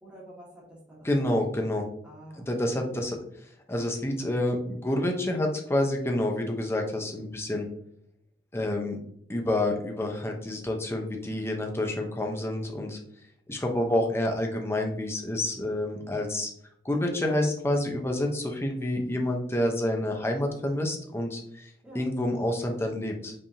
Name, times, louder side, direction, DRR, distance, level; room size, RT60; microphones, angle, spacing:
voice 1, 0.0-1.4 2.0-2.8 21.8-22.1, right 1 dB, 5° right, -6 dB, 1.4 m, -49 dB
voice 2, 1.0-1.9 2.4-3.2 3.4-7.7 8.5-9.0 9.3-13.0 13.5-16.5 16.8-23.3, left 1 dB, 15° left, 2 dB, 0.8 m, -28 dB
5.4 x 3.5 x 2.8 m, 0.71 s
head